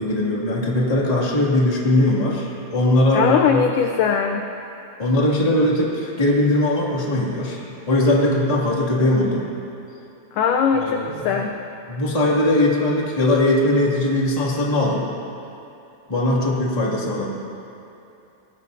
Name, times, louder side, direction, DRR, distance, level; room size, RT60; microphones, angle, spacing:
voice 1, 0.0-3.6 5.0-7.6 7.9-9.4 10.8-11.4 11.9-15.1 16.1-17.3, left 1 dB, 15° left, -4 dB, 1.5 m, -20 dB
voice 2, 3.1-4.4 10.3-11.5, left 6 dB, 80° left, 4 dB, 1.8 m, -20 dB
24.0 x 19.0 x 2.7 m, 2.8 s
omnidirectional pair, 4.4 m